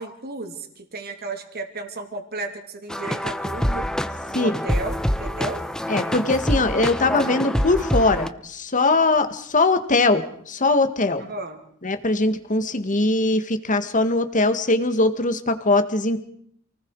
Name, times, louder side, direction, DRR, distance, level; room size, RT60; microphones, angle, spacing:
voice 1, 0.0-3.8 4.3-5.6 11.2-11.6, right 2 dB, 50° right, 5 dB, 3.0 m, -33 dB
sound 1, 2.9-8.3, equal, 5° left, 0.8 m, -26 dB
voice 2, 5.9-11.2 11.8-16.2, left 2 dB, 40° left, 10 dB, 1.9 m, -21 dB
28.5 x 19.5 x 4.8 m, 0.66 s
head